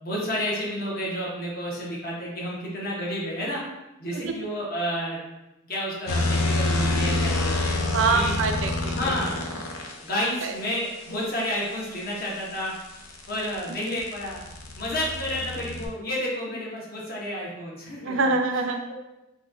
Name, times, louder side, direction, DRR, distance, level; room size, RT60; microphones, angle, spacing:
voice 1, 0.0-3.6 4.0-5.2 5.7-7.6 8.1-8.3 8.9-9.5 10.0-12.7 13.3-14.4 14.8-18.3 18.9-19.0, equal, 45° left, -4 dB, 0.8 m, -30 dB
sound 1, 6.1-9.9 12.2-15.9, left 2 dB, 85° left, 0.5 m, -27 dB
voice 2, 7.9-9.1 10.4-10.5 18.0-18.8, right 4 dB, 70° right, 5 dB, 0.4 m, -25 dB
2.9 x 2.3 x 3.6 m, 0.96 s
head